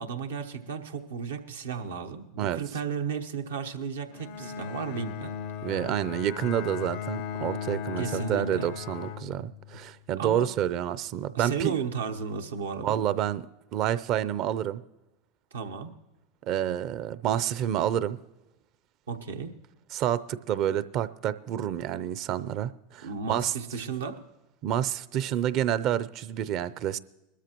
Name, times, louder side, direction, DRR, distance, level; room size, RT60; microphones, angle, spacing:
voice 1, 0.0-5.3 8.0-8.7 10.2-10.5 11.3-13.0 15.5-15.9 19.1-19.5 23.0-24.2, right 6 dB, 90° right, 1.0 m, -34 dB
Bowed string instrument, 4.1-9.9, left 8 dB, 65° left, 0.5 m, -37 dB
voice 2, 5.6-11.7 12.8-13.5 13.7-14.8 16.4-18.2 19.9-23.5 24.6-27.0, right 11 dB, 50° right, 0.5 m, -29 dB
21.0 x 13.0 x 3.0 m
hypercardioid pair, 95°, 0 cm